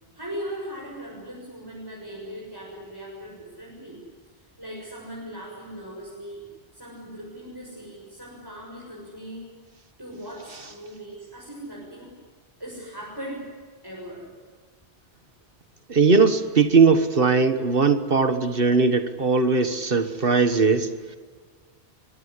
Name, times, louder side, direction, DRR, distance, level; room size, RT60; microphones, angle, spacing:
voice 1, 0.1-4.0 4.4-9.5 10.0-12.1 12.6-13.6 13.8-14.3, equal, 20° right, -4 dB, 6.7 m, -39 dB
voice 2, 15.9-20.9, right 4 dB, 55° right, 10 dB, 1.6 m, -19 dB
23.5 x 23.5 x 9.8 m, 1.5 s
omnidirectional pair, 1.1 m